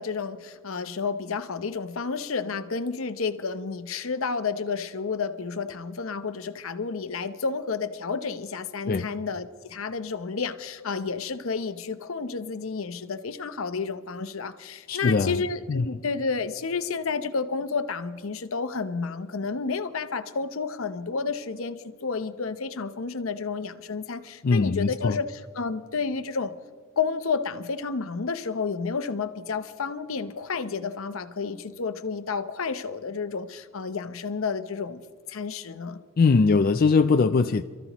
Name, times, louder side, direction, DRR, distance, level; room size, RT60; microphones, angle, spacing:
voice 1, 0.0-25.3 25.6-26.5 27.0-35.0 35.3-36.0, left 5 dB, 70° left, 0.8 m, -31 dB
voice 2, 14.9-15.4 15.7-15.9 24.4-25.2 36.2-37.6, left 4 dB, 45° left, 0.4 m, -21 dB
27.5 x 14.0 x 3.0 m
head